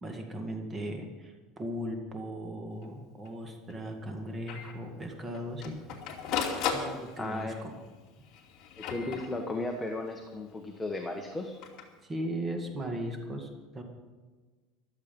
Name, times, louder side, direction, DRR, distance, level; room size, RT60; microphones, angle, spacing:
voice 1, 0.0-5.8 6.7-7.8 12.0-13.8, right 1 dB, 20° right, 3 dB, 1.9 m, -37 dB
Printer, 2.8-2.9 3.2-3.3 3.7-3.8 4.5-4.7 5.3-7.5 8.3-9.7 11.4-11.8, left 6 dB, 50° left, 2.7 m, -35 dB
voice 2, 7.2-7.6 8.8-11.5, left 2 dB, 10° left, 2 dB, 1.3 m, -35 dB
14.5 x 12.5 x 5.4 m, 1.3 s
cardioid pair, 145°, 0 cm